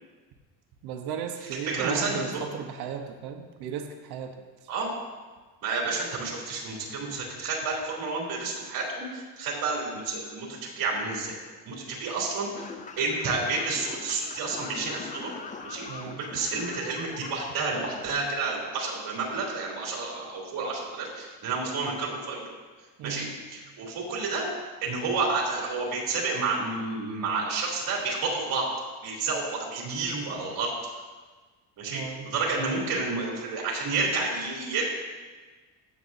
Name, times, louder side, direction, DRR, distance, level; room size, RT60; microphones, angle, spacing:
voice 1, 0.8-4.3 4.6-4.7 15.9-16.2 23.0-23.3 31.9-32.3, right 7 dB, 80° right, 4 dB, 1.1 m, -35 dB
voice 2, 1.7-2.2 4.7-4.9 5.6-11.4 11.6-12.7 13.0-15.3 15.6-22.4 23.0-24.5 24.8-28.7 29.0-30.7 31.8-34.9, right 3 dB, 60° right, -3 dB, 3.1 m, -30 dB
sound 1, 12.5-17.5, left 5 dB, 20° left, 0.4 m, -41 dB
15.0 x 7.4 x 2.7 m, 1.3 s
cardioid pair, 150°, 38 cm